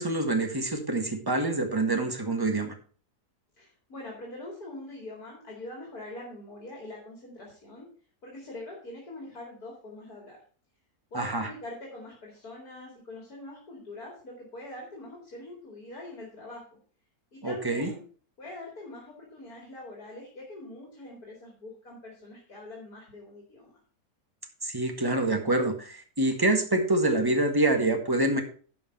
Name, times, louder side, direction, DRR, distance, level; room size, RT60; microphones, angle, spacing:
voice 1, 0.0-2.7 11.1-11.5 17.4-17.9 24.6-28.4, right 2 dB, 15° right, 5 dB, 1.4 m, -26 dB
voice 2, 3.6-7.9 8.2-10.4 11.1-16.8 17.3-18.0 18.4-23.8, left 2 dB, 65° left, -2 dB, 3.1 m, -43 dB
11.5 x 5.0 x 5.5 m, 0.43 s
omnidirectional pair, 1.7 m